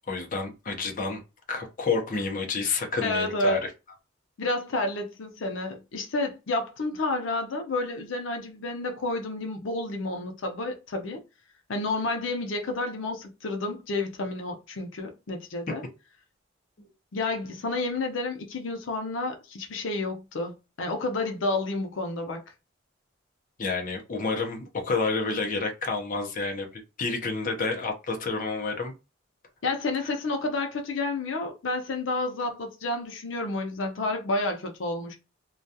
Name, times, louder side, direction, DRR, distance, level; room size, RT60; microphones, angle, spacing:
voice 1, 0.1-1.2 1.5-3.7 16.8-16.9 23.6-28.9, left 4 dB, 45° left, 0.6 m, -29 dB
voice 2, 3.0-3.6 4.4-11.2 11.7-15.8 17.1-20.5 20.8-22.4 29.6-35.2, left 2 dB, 85° left, 0.6 m, -30 dB
2.3 x 2.2 x 2.6 m
head